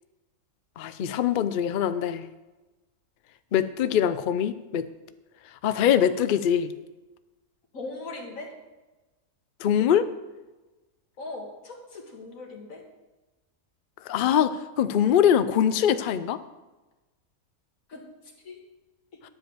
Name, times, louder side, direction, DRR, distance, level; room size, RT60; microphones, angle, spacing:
voice 1, 0.8-2.3 3.5-4.9 5.6-6.7 9.6-10.1 14.1-16.4, left 9 dB, 80° left, 12 dB, 0.4 m, -23 dB
voice 2, 7.7-8.5 11.2-12.8 17.9-18.0 18.4-18.6 19.1-19.2, left 2 dB, 65° left, 1 dB, 2.1 m, -39 dB
10.5 x 5.0 x 7.7 m, 1.1 s
omnidirectional pair, 1.5 m